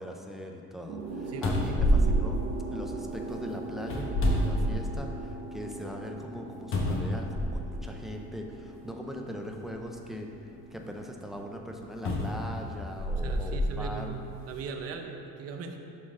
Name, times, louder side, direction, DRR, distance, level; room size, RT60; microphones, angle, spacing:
voice 1, 0.0-2.4 2.7-14.1, equal, ahead, 1 dB, 0.4 m, -40 dB
sound 1, 0.9-14.4, right 3 dB, 80° right, 1.0 m, -42 dB
sound 2, 1.0-1.1 1.4-3.1 3.8-5.2 5.7-5.8 6.7-7.8 8.8-8.9 12.0-13.7 14.4-14.5, equal, 40° left, 1.0 m, -27 dB
voice 2, 13.2-15.8, right 5 dB, 50° right, 4 dB, 0.7 m, -39 dB
11.0 x 4.1 x 3.6 m, 2.6 s
cardioid pair, 165°, 31 cm